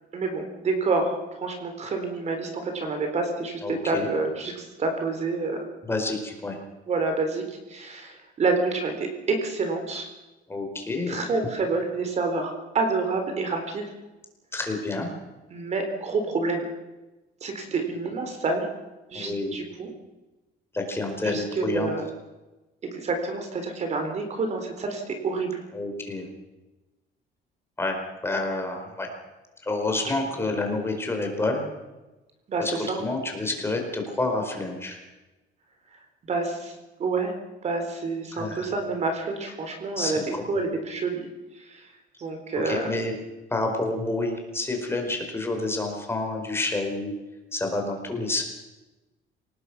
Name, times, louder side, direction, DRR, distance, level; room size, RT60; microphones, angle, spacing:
voice 1, 0.1-5.6 6.9-10.1 11.1-13.9 15.5-16.7 17.4-18.7 19.1-19.9 21.2-22.0 22.9-25.6 30.1-30.2 32.5-33.0 36.3-37.3 37.6-41.3 41.5-41.9 42.2-42.9, right 3 dB, 40° right, 5 dB, 4.0 m, -28 dB
voice 2, 3.6-4.1 5.8-6.6 10.5-11.2 14.5-15.1 19.1-19.5 20.7-21.9 25.7-26.2 27.8-29.1 29.6-31.7 32.6-35.0 38.3-38.7 40.0-40.4 42.5-43.1 43.5-47.1 47.5-48.4, left 2 dB, 15° left, 3 dB, 4.6 m, -29 dB
28.0 x 18.5 x 6.1 m, 1.1 s
cardioid pair, 145°, 18 cm